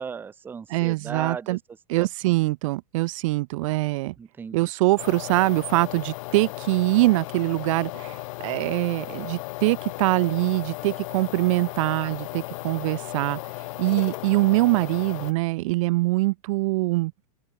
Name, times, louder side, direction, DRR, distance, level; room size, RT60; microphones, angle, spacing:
voice 1, 0.0-1.6 1.9-2.4 4.2-4.7, right 6 dB, 10° right, 0.7 m, -36 dB
voice 2, 0.7-1.6 1.9-4.1 4.5-13.4 13.8-17.1, right 20 dB, 55° right, 0.5 m, -23 dB
sound 1, 5.0-15.3, left 21 dB, 55° left, 1.1 m, -36 dB
open air
supercardioid pair, 160°, 20 cm